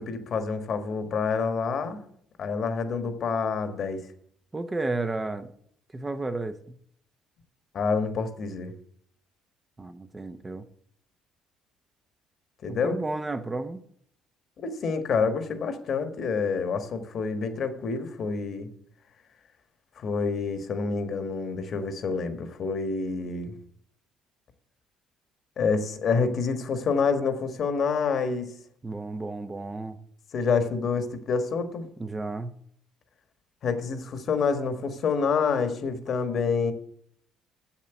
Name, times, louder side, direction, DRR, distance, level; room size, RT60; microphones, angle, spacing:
voice 1, 0.0-2.0 2.4-4.1 7.7-8.7 12.6-13.0 14.6-18.7 20.0-23.5 25.6-28.6 30.3-31.9 33.6-36.7, left 5 dB, 55° left, 1.4 m, -27 dB
voice 2, 4.5-5.5 5.9-6.8 9.8-10.6 12.7-13.8 28.8-30.0 32.0-32.5, right 2 dB, 20° right, 0.7 m, -32 dB
7.4 x 7.3 x 8.0 m
cardioid pair, 95°, 0 cm